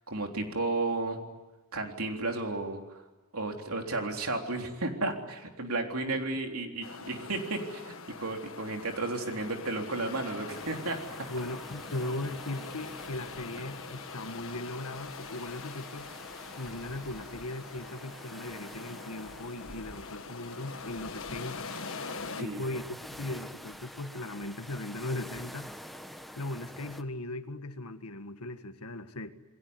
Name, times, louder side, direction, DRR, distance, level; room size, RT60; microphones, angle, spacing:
voice 1, 0.1-1.2 1.7-3.0 3.3-11.0 22.4-22.6, right 2 dB, 70° right, 3 dB, 3.6 m, -33 dB
sound 1, 6.8-22.4, left 5 dB, 65° left, 1.6 m, -44 dB
sound 2, 10.5-27.0, equal, ahead, 1.3 m, -48 dB
voice 2, 11.3-16.1 16.6-21.7 22.3-25.7 26.4-29.3, left 2 dB, 80° left, 9 dB, 1.7 m, -38 dB
28.5 x 21.5 x 9.7 m, 1.1 s
head